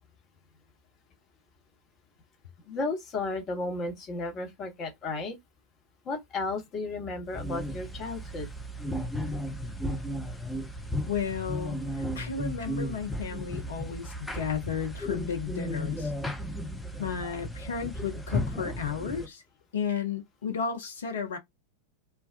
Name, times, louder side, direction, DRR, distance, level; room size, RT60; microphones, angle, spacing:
voice 1, 2.7-5.4 6.0-8.5, left 3 dB, 30° left, 1.0 m, -33 dB
sound 1, 7.3-19.3, equal, 5° left, 0.5 m, -34 dB
voice 2, 11.1-16.1 17.0-19.4 19.7-21.4, left 7 dB, 65° left, 0.5 m, -33 dB
2.2 x 2.2 x 2.5 m
figure-of-eight pair, 90°, 0 cm